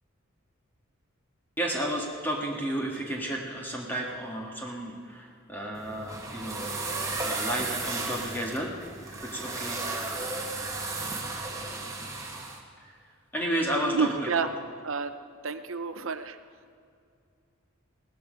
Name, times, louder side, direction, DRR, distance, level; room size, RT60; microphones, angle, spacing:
voice 1, 1.6-6.9 7.2-8.8 9.2-9.8 12.8-13.0 13.3-14.5, right 1 dB, 10° left, -1 dB, 1.8 m, -32 dB
sound 1, 5.7-12.6, right 3 dB, 15° right, 1.9 m, -34 dB
voice 2, 13.9-14.5 14.8-15.1 15.4-16.4, right 4 dB, 70° right, 10 dB, 0.8 m, -29 dB
17.5 x 14.5 x 5.3 m, 2.3 s
head